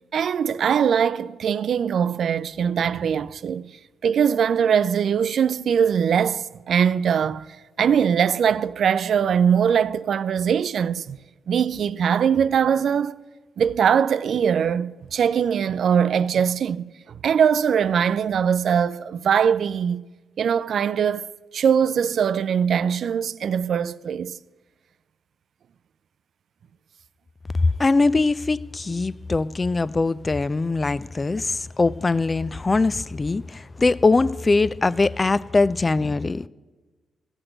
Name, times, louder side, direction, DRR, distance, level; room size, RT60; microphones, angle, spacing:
voice 1, 0.1-3.7 4.0-7.5 7.8-11.2 11.5-13.2 13.6-20.0 20.4-24.3, right 7 dB, 65° right, 0.3 m, -21 dB
voice 2, 27.8-36.5, left 3 dB, 30° left, 0.4 m, -22 dB
14.5 x 6.0 x 7.7 m
cardioid pair, 65°, 0 cm